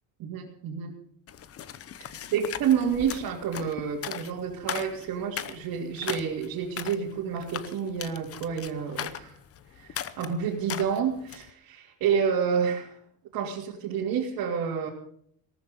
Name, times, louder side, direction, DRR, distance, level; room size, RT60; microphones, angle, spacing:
voice 1, 0.2-0.9 2.3-9.3 9.8-12.9 13.3-14.9, right 7 dB, 65° right, -4 dB, 3.1 m, -29 dB
sound 1, 1.3-11.5, left 9 dB, 40° left, 0.9 m, -39 dB
18.0 x 13.5 x 5.4 m, 0.63 s
cardioid pair, 150°, 37 cm